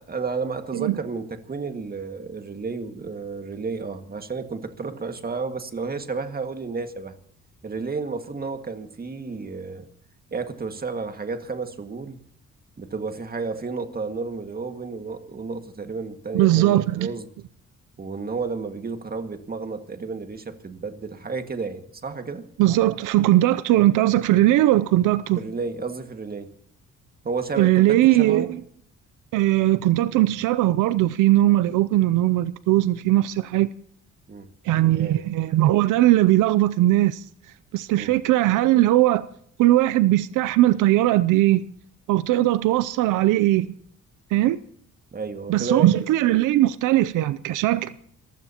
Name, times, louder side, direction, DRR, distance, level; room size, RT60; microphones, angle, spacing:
voice 1, 0.0-7.1 7.6-9.9 10.3-12.2 12.8-17.3 18.0-22.5 25.4-26.5 27.2-28.5 34.3-34.5 34.8-35.2 37.9-38.1 45.1-45.9, right 4 dB, 30° right, 1.9 m, -31 dB
voice 2, 16.3-17.1 22.6-25.4 27.6-28.6 29.3-33.7 34.6-37.2 37.7-39.2 39.6-41.6 42.1-43.7 44.3-44.6 45.5-47.9, right 15 dB, 85° right, 0.6 m, -19 dB
28.5 x 15.0 x 2.9 m
cardioid pair, 90°, 30 cm